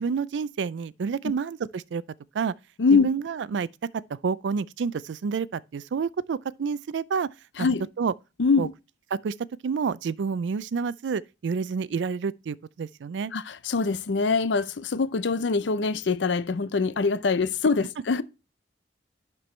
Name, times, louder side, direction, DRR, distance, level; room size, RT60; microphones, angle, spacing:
voice 1, 0.0-2.0 2.3-2.5 2.9-3.7 4.1-7.3 7.6-7.7 8.0-8.1 8.6-8.7 9.1-9.3 9.6-13.3, right 5 dB, 80° right, 0.4 m, -29 dB
voice 2, 2.8-3.1 7.6-7.8 8.4-8.7 13.3-18.2, left 4 dB, 85° left, 0.6 m, -24 dB
11.0 x 4.6 x 3.2 m
head